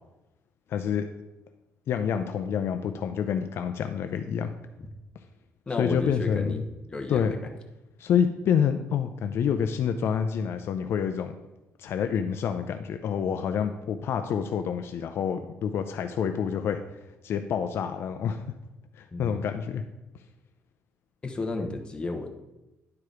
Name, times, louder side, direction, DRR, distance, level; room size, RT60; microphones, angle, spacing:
voice 1, 0.7-1.1 1.9-4.5 5.8-6.6 7.1-7.3 8.0-11.3 11.8-16.8 17.2-18.4 19.0-19.8, left 7 dB, 55° left, 7 dB, 0.5 m, -27 dB
voice 2, 5.7-6.6 6.9-7.4 19.1-19.4 21.2-22.3, left 3 dB, 20° left, 4 dB, 1.0 m, -32 dB
10.5 x 4.7 x 4.9 m, 0.98 s
cardioid pair, 140°, 5 cm